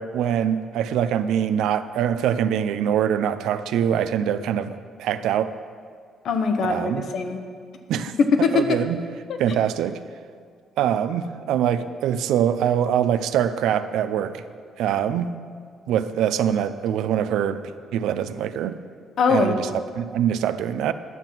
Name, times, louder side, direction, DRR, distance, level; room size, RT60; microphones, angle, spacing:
voice 1, 0.0-5.5 6.6-7.0 7.9-8.1 8.5-9.0 9.4-10.0 10.8-14.4 14.8-15.3 15.9-17.6 17.9-18.8 19.3-20.9, right 9 dB, 85° right, 12 dB, 0.4 m, -23 dB
voice 2, 6.2-7.4 8.2-8.8 9.3-9.4 19.2-19.6, left 5 dB, 55° left, 6 dB, 1.0 m, -21 dB
11.0 x 5.9 x 7.4 m, 2.1 s
cardioid pair, 140°, 0 cm